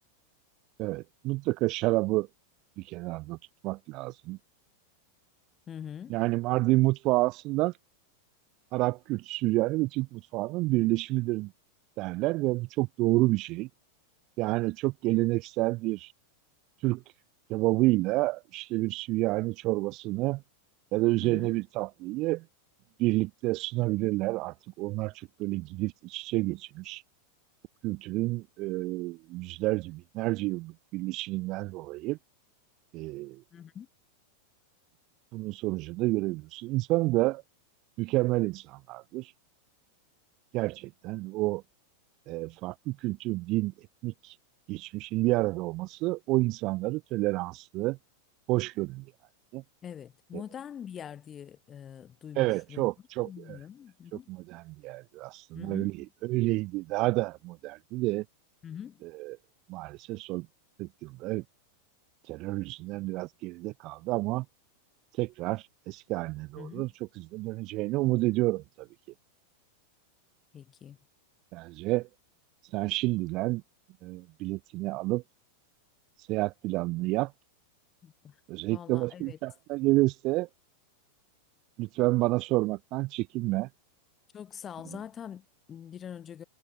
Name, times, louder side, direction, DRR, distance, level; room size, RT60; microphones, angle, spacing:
voice 1, 0.8-2.3 2.8-3.4 3.6-4.4 6.1-7.7 8.7-11.5 12.0-13.7 14.4-16.1 16.8-17.0 17.5-20.4 20.9-22.4 23.0-27.0 27.8-32.2 32.9-33.4 35.3-37.4 38.0-39.3 40.5-41.6 42.3-43.7 44.0-44.3 44.7-48.0 48.5-49.0 49.5-49.6 50.3-50.4 52.4-53.6 54.3-55.9 56.2-58.2 59.2-59.4 59.7-60.5 60.8-61.4 62.3-64.4 65.2-66.9 67.2-68.9 71.5-72.1 72.7-73.6 74.0-75.2 76.3-77.3 78.5-80.5 81.8-83.7, right 20 dB, 40° right, 1.1 m, -29 dB
voice 2, 5.7-6.2 21.2-21.5 33.5-33.9 49.8-52.9 53.2-54.3 55.5-56.1 58.6-59.0 66.6-66.9 70.5-71.0 78.0-78.4 78.7-79.4 84.3-86.4, left 9 dB, 25° left, 4.1 m, -44 dB
figure-of-eight pair, 90°, 0 cm